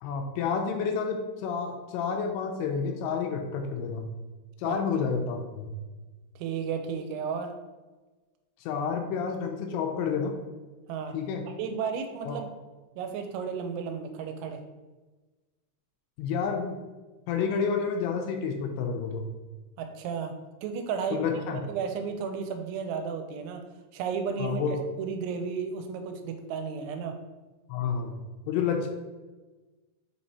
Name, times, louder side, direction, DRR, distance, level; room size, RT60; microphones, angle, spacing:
voice 1, 0.0-4.1 4.6-5.7 8.6-10.4 11.1-11.4 12.3-12.4 16.2-16.8 17.3-19.3 21.1-21.6 24.4-24.8 27.7-28.1 28.5-28.9, left 6 dB, 80° left, 3 dB, 2.9 m, -29 dB
voice 2, 6.4-7.5 10.9-11.2 11.6-12.5 13.0-14.6 19.8-20.3 20.6-21.2 21.6-23.6 23.9-24.6 25.0-27.2, right 6 dB, 85° right, 6 dB, 2.9 m, -33 dB
7.0 x 3.4 x 4.1 m, 1.2 s
omnidirectional pair, 5.4 m